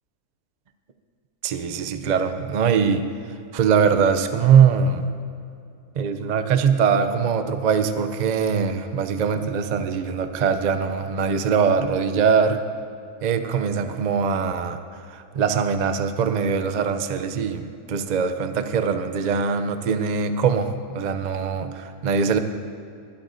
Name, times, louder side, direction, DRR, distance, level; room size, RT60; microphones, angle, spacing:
voice 1, 1.4-3.0 3.5-5.0 5.9-12.6 13.2-14.8 15.1-22.4, right 6 dB, 70° right, 8 dB, 0.4 m, -22 dB
21.0 x 12.5 x 2.7 m, 2.5 s
omnidirectional pair, 1.6 m